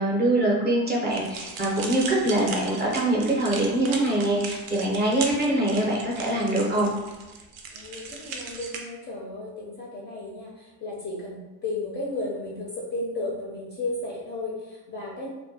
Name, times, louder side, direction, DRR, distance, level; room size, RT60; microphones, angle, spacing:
voice 1, 0.0-6.9, right 1 dB, 25° right, -3 dB, 0.5 m, -24 dB
sound 1, 1.1-8.8, right 5 dB, 75° right, 0.5 m, -38 dB
voice 2, 7.7-15.3, left 2 dB, 25° left, -4 dB, 0.4 m, -34 dB
2.1 x 2.1 x 2.7 m, 1.1 s
cardioid pair, 110°, 42 cm